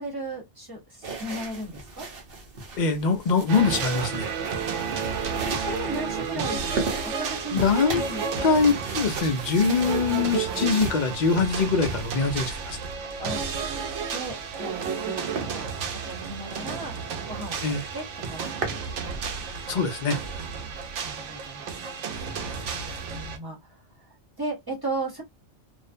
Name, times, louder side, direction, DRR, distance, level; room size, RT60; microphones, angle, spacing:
voice 1, 0.0-2.1 4.5-5.2 5.7-7.6 8.0-8.3 13.2-13.4 14.1-16.9 17.3-17.6 17.9-18.8 20.4-21.6 22.1-22.3 22.6-23.6 24.4-25.2, right 2 dB, 20° right, 0.9 m, -36 dB
sound 1, 1.0-12.7 14.0-15.0 15.3-15.5 16.0-16.2 16.6-16.7 17.0-17.1 17.4-17.8 18.2-18.8, right 4 dB, 55° right, 0.9 m, -37 dB
voice 2, 2.8-4.3 7.5-8.0 8.4-12.8 17.6-17.8 19.7-20.2, left 5 dB, 55° left, 0.5 m, -23 dB
sound 2, 3.5-23.4, right 6 dB, 90° right, 0.9 m, -32 dB
2.5 x 2.1 x 2.5 m
omnidirectional pair, 1.2 m